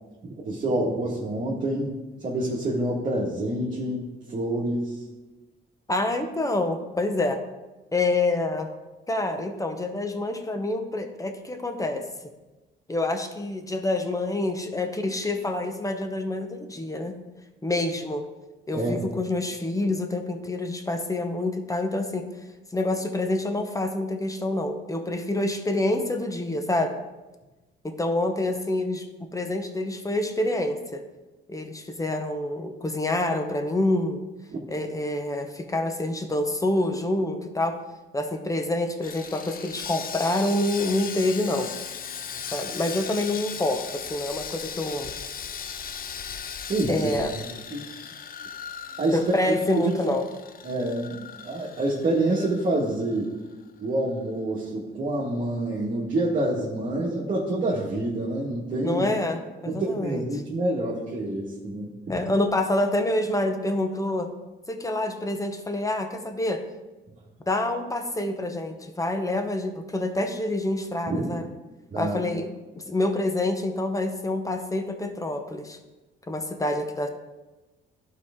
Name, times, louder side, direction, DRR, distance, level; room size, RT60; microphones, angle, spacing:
voice 1, 0.2-1.9 2.2-5.0 18.7-19.1 34.5-34.6 46.7-47.8 49.0-49.2 49.4-49.9 50.6-53.3 53.8-59.1 59.6-61.9 71.1-71.3 71.9-72.2, right 2 dB, 40° right, -7 dB, 1.7 m, -27 dB
voice 2, 5.9-7.4 7.9-8.7 9.1-12.0 12.9-17.1 17.6-18.2 18.7-22.3 22.7-27.0 27.8-29.1 29.3-31.0 31.5-34.2 34.7-37.8 38.1-41.7 42.5-45.1 46.9-47.3 49.1-50.2 58.8-60.2 62.1-64.3 64.7-66.6 67.5-71.4 72.0-72.5 72.9-75.8 76.3-77.1, left 2 dB, 15° left, 6 dB, 0.9 m, -27 dB
Sawing, 39.0-53.3 53.5-53.7 54.2-54.3, left 7 dB, 45° left, 0.6 m, -38 dB
11.5 x 4.8 x 3.7 m, 1.1 s
cardioid pair, 90°, 20 cm